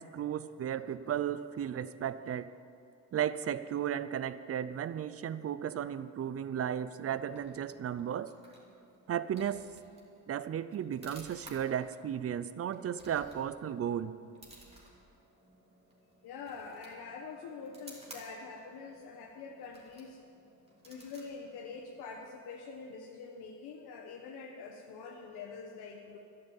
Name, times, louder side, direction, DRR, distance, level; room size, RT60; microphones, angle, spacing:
voice 1, 0.0-2.5 3.1-8.3 9.1-9.7 10.3-14.2, right 9 dB, 40° right, 15 dB, 0.5 m, -35 dB
sound 1, 6.8-22.4, right 1 dB, 15° right, 2.9 m, -58 dB
voice 2, 16.2-20.2 20.8-26.2, left 4 dB, 85° left, 1 dB, 1.2 m, -45 dB
12.0 x 11.5 x 7.2 m, 2.5 s
cardioid pair, 120°, 38 cm